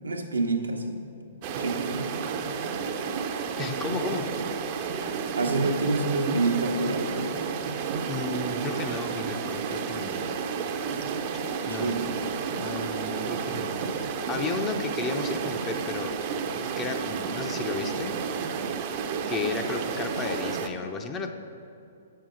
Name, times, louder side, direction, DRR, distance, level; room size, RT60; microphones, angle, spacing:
voice 1, 0.0-1.1 1.6-2.2 5.4-7.4 11.7-12.0, right 2 dB, 90° right, 2 dB, 0.9 m, -28 dB
sound 1, 1.4-20.7, right 6 dB, 40° right, 0.6 m, -31 dB
voice 2, 3.6-4.3 8.1-10.3 11.7-12.0 12.6-18.1 19.3-21.3, left 4 dB, 20° left, 5 dB, 0.6 m, -33 dB
7.4 x 5.6 x 5.1 m, 2.6 s
figure-of-eight pair, 120°, 0 cm